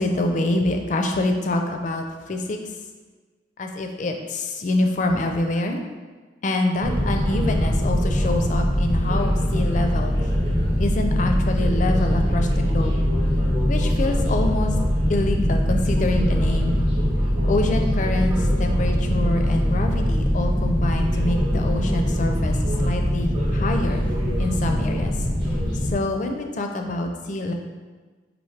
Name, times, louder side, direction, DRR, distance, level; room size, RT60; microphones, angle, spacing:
voice 1, 0.0-2.6 3.6-5.8 6.4-10.2 10.8-12.9 13.7-14.7 15.1-16.8 17.4-24.0 24.4-25.1 25.9-27.5, left 2 dB, 40° left, 4 dB, 0.4 m, -26 dB
sound 1, 6.8-25.9, equal, 30° right, 0.9 m, -22 dB
5.5 x 2.6 x 3.2 m, 1.4 s
head